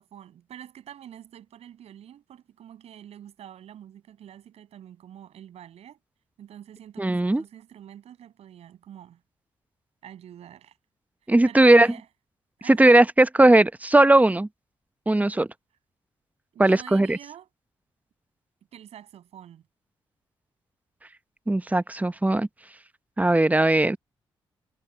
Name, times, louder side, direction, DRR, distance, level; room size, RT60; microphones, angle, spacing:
voice 1, 0.0-6.0 6.4-9.2 10.0-10.8 11.4-12.1 12.6-12.9 16.5-17.5 18.7-19.6, right 10 dB, 75° right, 7.9 m, -46 dB
voice 2, 7.0-7.4 11.3-11.9 12.7-14.5 15.1-15.5 16.6-17.2 21.5-22.5 23.2-24.0, right 2 dB, 15° right, 0.9 m, -18 dB
hypercardioid pair, 40°, 11 cm